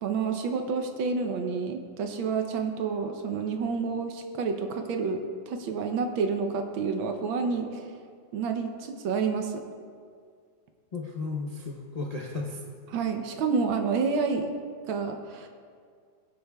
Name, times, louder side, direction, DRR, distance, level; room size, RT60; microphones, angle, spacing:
voice 1, 0.0-7.9 8.3-9.6 12.9-14.6 14.9-15.5, right 5 dB, 85° right, 5 dB, 1.6 m, -29 dB
voice 2, 10.9-12.6 15.4-15.5, left 3 dB, 50° left, -2 dB, 0.4 m, -34 dB
19.5 x 7.6 x 2.3 m, 2.1 s
omnidirectional pair, 2.1 m